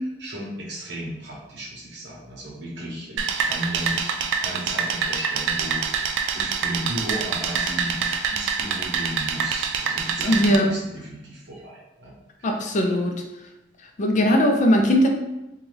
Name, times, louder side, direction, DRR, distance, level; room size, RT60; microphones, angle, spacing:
voice 1, 0.2-4.1 4.4-12.1 12.4-12.5, right 1 dB, 70° right, -3 dB, 0.9 m, -35 dB
sound 1, 3.2-10.6, right 6 dB, 85° right, 0.3 m, -26 dB
voice 2, 10.2-10.7 12.4-13.2 14.0-15.1, equal, 40° left, 3 dB, 0.4 m, -19 dB
2.6 x 2.3 x 3.2 m, 0.94 s
head